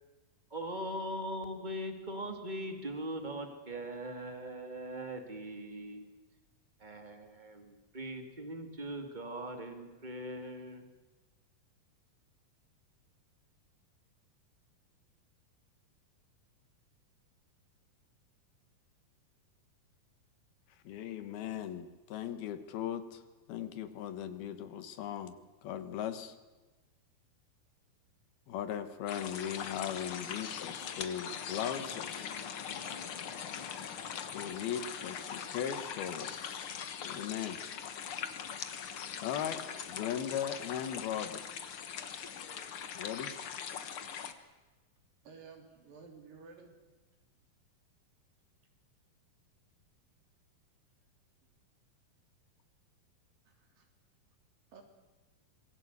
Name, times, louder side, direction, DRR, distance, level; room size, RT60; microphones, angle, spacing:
voice 1, 0.5-6.1 6.8-10.9, equal, 15° right, 6 dB, 2.0 m, -40 dB
voice 2, 20.8-23.2 23.5-25.4 25.6-26.4 28.5-32.3 34.3-36.7 37.0-37.6 39.2-39.6 39.9-41.4 42.9-43.3, left 9 dB, 80° left, 11 dB, 3.3 m, -38 dB
sound 1, 29.1-44.3, left 7 dB, 60° left, 1.4 m, -41 dB
voice 3, 45.2-46.7 53.4-53.9 54.7-54.8, right 5 dB, 65° right, 4 dB, 5.0 m, -53 dB
26.5 x 22.0 x 8.2 m, 1.2 s
omnidirectional pair, 4.3 m